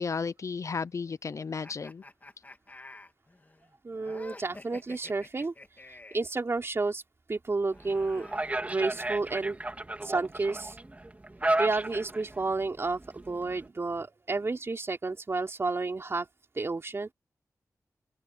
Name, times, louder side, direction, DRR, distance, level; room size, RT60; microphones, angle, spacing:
voice 1, 0.0-2.0, left 5 dB, 55° left, 0.7 m, -33 dB
sound 1, 1.6-6.3 7.5-9.2, left 2 dB, 30° left, 3.1 m, -50 dB
voice 2, 3.8-5.5 5.9-7.0 7.3-8.3 8.7-9.6 10.0-10.8 11.6-16.3 16.5-17.1, right 3 dB, 45° right, 3.8 m, -31 dB
sound 2, 7.7-13.7, right 2 dB, 25° right, 3.6 m, -34 dB
open air
wide cardioid pair, 85°, 6 cm